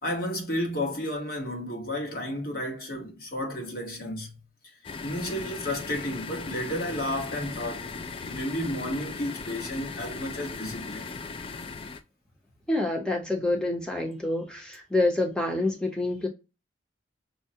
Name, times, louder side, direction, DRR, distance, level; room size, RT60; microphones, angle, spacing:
voice 1, 0.0-4.4 5.0-7.9 8.3-11.0, left 1 dB, 50° left, 1.2 m, -32 dB
sound 1, 4.8-12.0, left 4 dB, 30° left, 0.3 m, -38 dB
voice 2, 12.7-16.3, left 2 dB, 5° left, 0.7 m, -27 dB
5.5 x 2.1 x 2.7 m
head